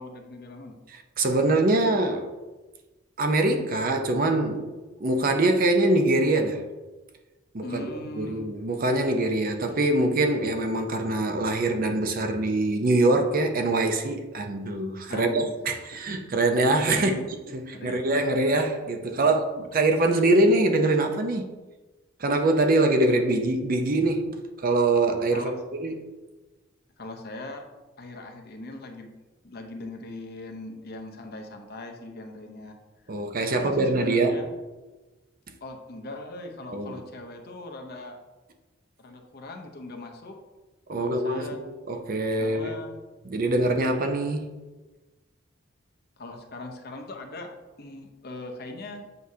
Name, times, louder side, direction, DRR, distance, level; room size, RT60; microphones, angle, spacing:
voice 1, 0.0-0.8 7.6-8.5 15.1-15.7 16.9-17.2 17.7-18.0 25.3-25.6 27.0-27.6 28.0-29.1 29.4-32.8 33.5-34.5 35.6-38.2 39.0-40.3 41.0-41.6 42.4-42.9 46.2-47.5 47.8-49.0, left 2 dB, 50° left, 0.8 m, -39 dB
voice 2, 0.9-2.3 3.2-4.7 5.0-6.6 7.5-7.9 8.2-17.1 17.5-21.5 22.2-25.5 25.8-26.1 33.1-34.4 36.7-37.0 40.9-42.7 43.2-44.5, right 2 dB, 45° right, 0.6 m, -24 dB
8.1 x 4.8 x 2.8 m
head